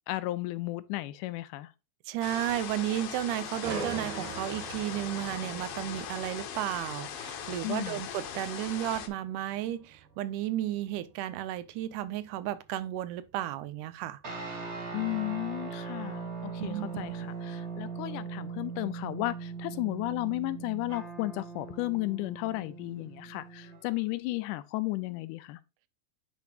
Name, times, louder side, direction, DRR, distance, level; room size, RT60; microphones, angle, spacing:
voice 1, 0.1-1.7 7.6-8.0 14.9-25.6, left 19 dB, 90° left, 2.2 m, -34 dB
voice 2, 2.1-14.2 16.6-17.3, right 13 dB, 90° right, 2.2 m, -33 dB
sound 1, 2.2-9.1, left 8 dB, 65° left, 1.5 m, -40 dB
sound 2, 3.6-17.5 17.9-18.2, right 4 dB, 75° right, 2.8 m, -45 dB
sound 3, 14.2-23.9, right 5 dB, 45° right, 0.8 m, -40 dB
9.9 x 4.2 x 2.8 m
omnidirectional pair, 3.6 m